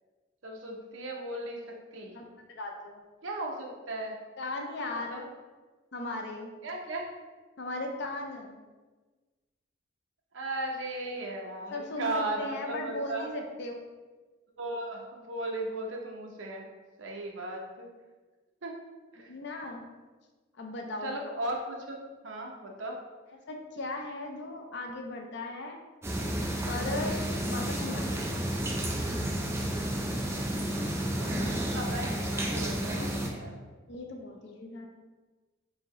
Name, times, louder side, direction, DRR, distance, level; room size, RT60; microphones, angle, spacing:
voice 1, 0.4-1.6 1.9-2.1 3.2-4.2 4.8-5.2 6.6-7.1 10.3-13.3 14.6-16.6 17.0-17.9 18.6-18.7 19.1-19.3 21.0-22.0 22.2-23.0 31.2-33.6, right 2 dB, 70° right, 0 dB, 0.7 m, -36 dB
voice 2, 2.1-3.0 4.4-5.2 5.9-6.5 7.6-8.5 11.7-13.8 19.2-19.9 20.6-21.1 23.5-25.8 26.7-28.5 33.9-34.9, left 2 dB, 60° left, 3 dB, 0.5 m, -37 dB
sound 1, 26.0-33.3, right 1 dB, 15° right, 0.4 m, -31 dB
4.6 x 2.8 x 3.0 m, 1.3 s
head